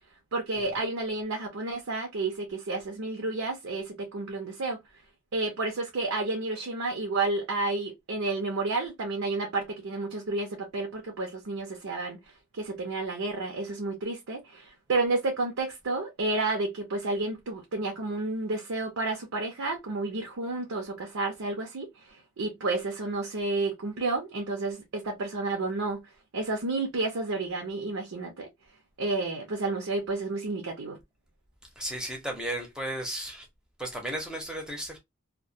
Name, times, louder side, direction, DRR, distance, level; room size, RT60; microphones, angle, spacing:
voice 1, 0.3-4.8 5.3-12.2 12.5-26.0 26.3-28.5 29.0-31.0, right 3 dB, 80° right, 0.6 m, -31 dB
voice 2, 31.8-33.5 33.8-35.0, right 1 dB, 5° right, 0.6 m, -34 dB
2.2 x 2.1 x 2.6 m
head